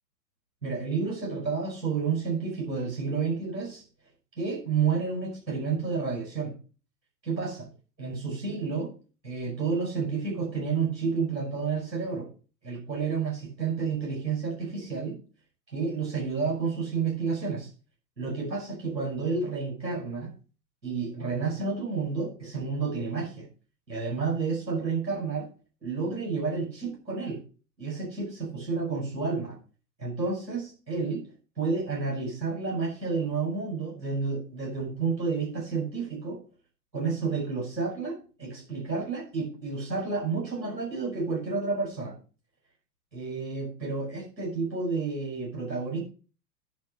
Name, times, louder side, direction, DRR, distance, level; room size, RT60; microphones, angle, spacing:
voice 1, 0.6-3.8 4.4-6.5 7.2-7.7 8.0-8.9 9.2-12.3 12.6-15.1 15.7-17.7 18.2-20.3 20.8-23.5 23.9-25.5 25.8-27.4 27.8-29.6 30.0-31.2 31.6-36.4 36.9-42.2 43.1-46.0, right 4 dB, 85° right, -2 dB, 5.9 m, -30 dB
10.5 x 5.1 x 7.7 m, 0.36 s
figure-of-eight pair, 95°, 49 cm